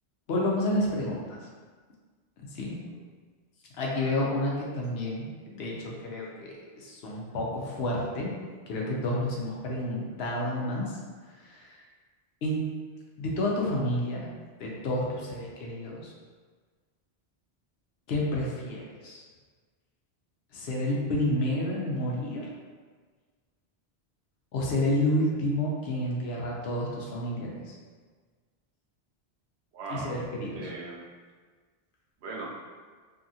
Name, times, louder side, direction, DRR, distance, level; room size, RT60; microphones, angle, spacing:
voice 1, 0.3-1.4 2.5-2.8 3.8-8.3 8.7-11.0 11.4-11.7 12.4-12.7 13.2-14.3 14.6-16.1 18.1-19.2 20.5-22.5 24.5-27.7 29.9-30.7, left 1 dB, 75° left, -3 dB, 0.8 m, -30 dB
voice 2, 29.7-30.2 30.5-31.1 32.2-32.5, right 3 dB, 85° right, -3 dB, 0.9 m, -39 dB
2.7 x 2.4 x 2.6 m, 1.5 s
omnidirectional pair, 1.1 m